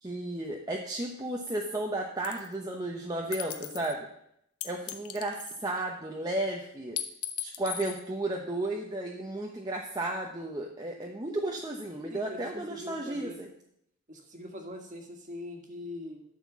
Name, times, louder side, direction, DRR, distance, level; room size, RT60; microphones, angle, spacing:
voice 1, 0.0-4.1 4.6-7.0 7.4-13.5, right 1 dB, 15° right, 0 dB, 0.8 m, -34 dB
sound 1, 2.2-2.5 3.3-3.9 4.6-5.8 7.0-8.0, left 10 dB, 75° left, 0.9 m, -37 dB
voice 2, 12.1-13.4 14.1-16.2, left 1 dB, 35° right, 2 dB, 1.7 m, -42 dB
12.0 x 4.4 x 7.3 m, 0.74 s
head